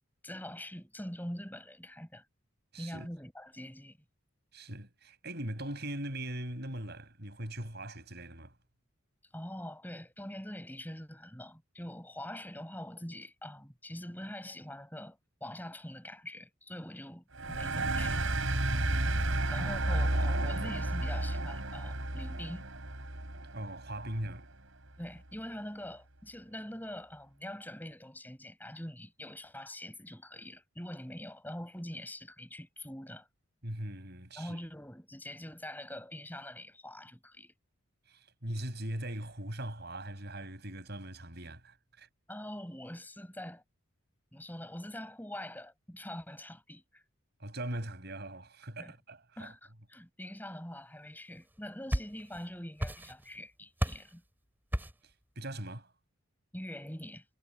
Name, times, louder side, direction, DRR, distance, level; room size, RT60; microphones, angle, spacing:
voice 1, 0.2-2.2 2.8-4.0 9.3-18.3 19.5-22.7 24.2-24.3 25.0-33.3 34.4-37.5 42.3-43.6 44.3-47.0 48.8-48.9 49.4-54.2 56.5-57.2, left 1 dB, 10° left, 7.5 m, -44 dB
voice 2, 2.7-3.1 4.5-8.5 18.7-19.1 23.5-24.5 33.6-34.6 38.1-42.1 47.4-49.5 55.4-55.9, right 1 dB, 50° right, 6.2 m, -40 dB
sound 1, 17.4-24.5, right 1 dB, 70° right, 4.6 m, -32 dB
sound 2, 51.5-52.5 52.8-53.4 53.8-54.2 54.7-55.1, equal, 10° right, 3.9 m, -34 dB
head